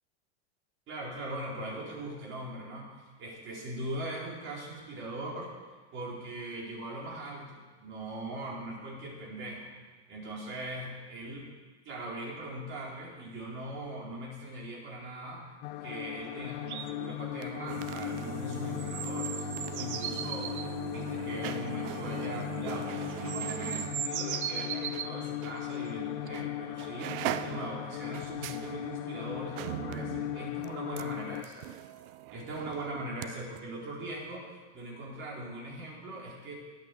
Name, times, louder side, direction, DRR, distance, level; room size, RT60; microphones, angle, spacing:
voice 1, 0.9-2.9 3.2-5.5 5.9-9.7 10.1-11.6 11.8-15.4 15.8-19.5 19.7-31.7 32.3-34.5 34.7-36.5, right 1 dB, 35° right, -3 dB, 4.2 m, -40 dB
sound 1, 15.6-31.4, left 15 dB, 55° left, 0.6 m, -38 dB
sound 2, 16.7-16.9 18.8-20.7 22.6-22.7 23.1-25.1 26.3-26.4, right 9 dB, 75° right, 1.1 m, -37 dB
sound 3, 17.3-25.1 25.4-25.6 26.3-26.5 26.8-33.3 33.5-33.6, right 13 dB, 55° right, 0.7 m, -41 dB
12.0 x 8.5 x 6.9 m, 1.4 s
supercardioid pair, 130°, 34 cm